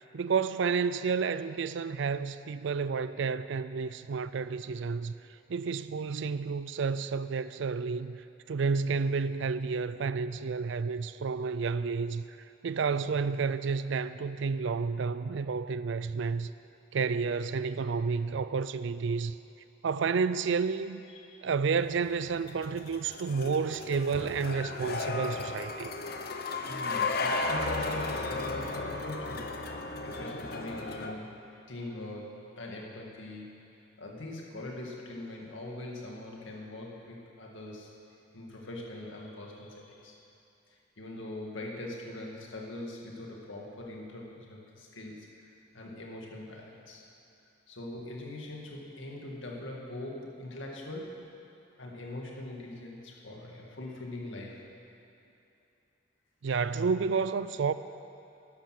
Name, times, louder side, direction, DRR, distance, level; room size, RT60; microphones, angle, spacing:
voice 1, 0.0-5.1 5.5-12.2 12.6-16.5 16.9-19.3 19.8-21.0 21.4-25.9 56.4-57.7, right 5 dB, 70° right, 14 dB, 0.4 m, -30 dB
voice 2, 21.1-21.5 26.7-37.9 38.3-40.2 41.0-47.0 47.7-51.2 51.8-54.6, left 1 dB, 80° left, -1 dB, 2.0 m, -42 dB
sound 1, 21.8-31.1, left 3 dB, 50° left, 0.7 m, -35 dB
12.0 x 10.5 x 6.5 m, 2.7 s
head